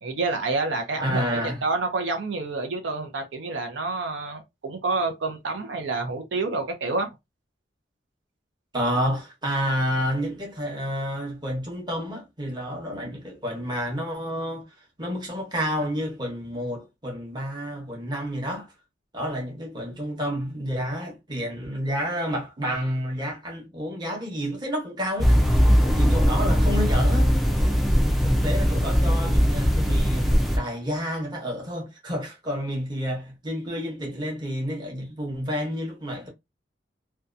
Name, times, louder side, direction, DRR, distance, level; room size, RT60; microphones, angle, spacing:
voice 1, 0.0-1.2 1.6-7.1, right 3 dB, 80° right, 0.6 m, -28 dB
voice 2, 1.0-1.6 8.7-14.6 15.0-18.7 19.1-27.3 27.6-27.8 28.2-36.3, equal, 25° right, 0.9 m, -30 dB
sound 1, 25.2-30.6, equal, ahead, 0.3 m, -20 dB
2.7 x 2.2 x 2.4 m
head